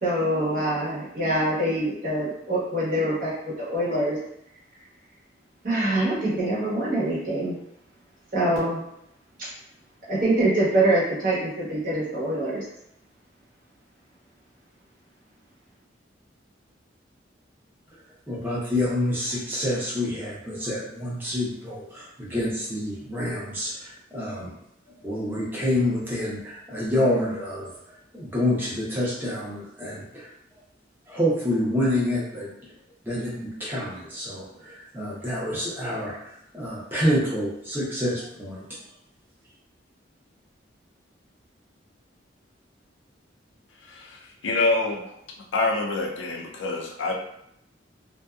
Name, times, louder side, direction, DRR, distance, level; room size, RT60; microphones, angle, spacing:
voice 1, 0.0-3.3 3.6-4.2 5.6-7.6 8.3-8.8 9.4-9.5 10.1-12.6, right 1 dB, 45° right, -8 dB, 1.0 m, -24 dB
voice 2, 18.3-24.5 25.0-27.7 28.1-30.3 31.1-32.5 33.0-38.6, left 1 dB, 10° right, -7 dB, 0.7 m, -27 dB
voice 3, 43.8-45.0 45.5-47.1, left 3 dB, 85° left, 0 dB, 0.5 m, -26 dB
2.6 x 2.2 x 2.3 m, 0.77 s
head